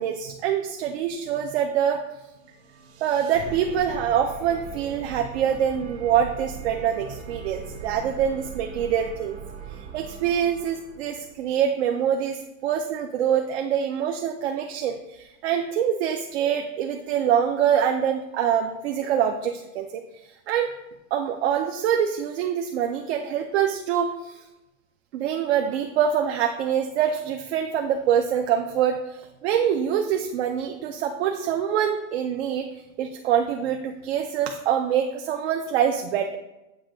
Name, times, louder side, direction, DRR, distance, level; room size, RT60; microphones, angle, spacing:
voice 1, 0.0-2.0 3.0-9.4 9.8-20.7 21.1-24.4 25.1-36.4, right 8 dB, 55° right, 4 dB, 0.5 m, -25 dB
sound 1, 2.3-11.5, right 6 dB, 70° right, 1.3 m, -40 dB
7.5 x 2.7 x 5.0 m, 0.98 s
supercardioid pair, 165°, 40 cm